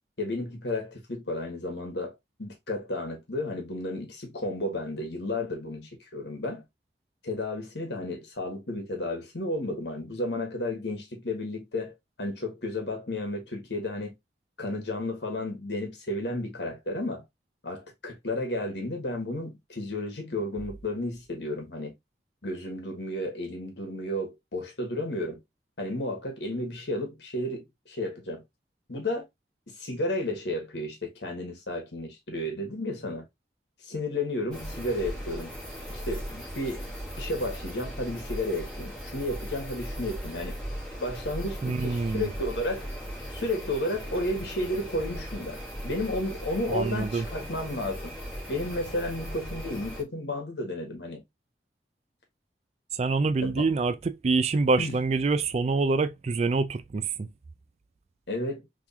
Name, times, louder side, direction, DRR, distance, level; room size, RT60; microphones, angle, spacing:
voice 1, 0.2-2.1 2.4-6.6 7.2-14.1 14.6-17.2 17.6-21.9 22.4-25.4 25.8-28.4 28.9-29.2 29.8-33.3 33.8-35.5 35.9-36.9 37.2-40.6 41.0-42.9 43.3-48.2 48.5-51.2 53.4-53.7 54.8-55.0 58.3-58.7, left 1 dB, 75° left, 1.5 m, -32 dB
sound 1, 34.5-50.0, equal, 5° left, 1.5 m, -38 dB
voice 2, 41.6-42.3 46.7-47.2 52.9-57.3, right 3 dB, 35° right, 0.3 m, -26 dB
3.6 x 3.1 x 2.8 m
head